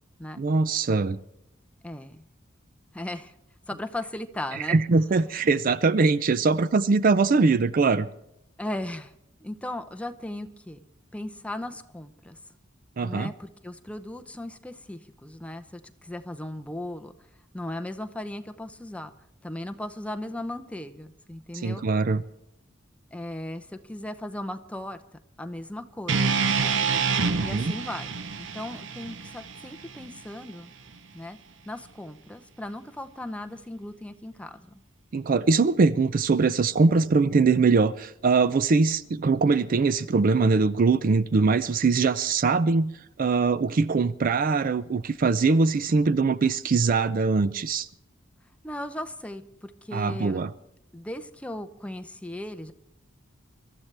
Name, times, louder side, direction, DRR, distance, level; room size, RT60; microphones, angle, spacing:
voice 1, 0.4-1.2 4.7-8.1 13.0-13.3 21.6-22.2 27.3-27.7 35.1-47.9 49.9-50.5, right 4 dB, 45° right, 0.4 m, -22 dB
voice 2, 1.8-2.2 2.9-3.3 3.7-4.8 8.6-9.1 9.4-10.8 11.1-12.4 13.0-17.1 17.5-19.1 19.4-21.8 23.1-25.0 25.4-26.5 27.4-30.7 31.1-31.4 31.7-34.8 48.6-50.4 50.9-52.7, left 1 dB, 5° left, 0.7 m, -37 dB
sound 1, 26.1-30.3, right 5 dB, 70° right, 0.8 m, -27 dB
24.5 x 13.0 x 3.4 m
head